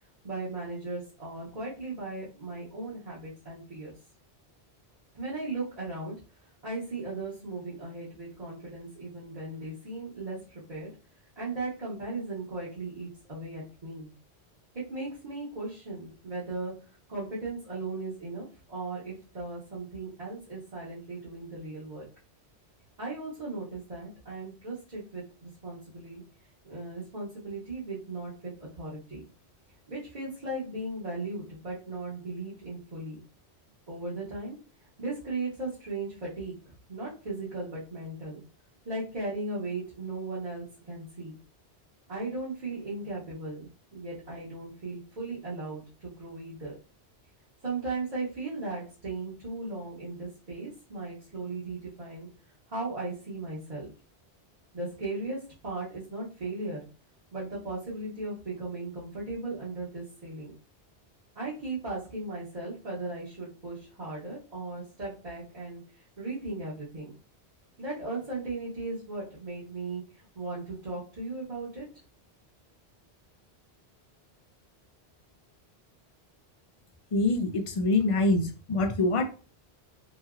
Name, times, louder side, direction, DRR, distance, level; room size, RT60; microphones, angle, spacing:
voice 1, 0.2-3.9 5.1-6.1 6.6-10.9 11.4-14.1 14.7-16.7 17.1-22.0 23.0-26.2 26.6-29.2 29.9-33.2 33.9-34.6 35.0-38.4 38.8-41.4 42.1-46.7 47.6-52.3 52.7-53.9 54.7-56.8 57.3-60.5 61.3-65.8 66.2-67.1 67.8-71.8, right 2 dB, 40° right, -8 dB, 1.0 m, -37 dB
voice 2, 77.1-79.2, left 2 dB, 55° left, 5 dB, 0.4 m, -25 dB
3.0 x 2.7 x 2.4 m, 0.35 s
omnidirectional pair, 1.1 m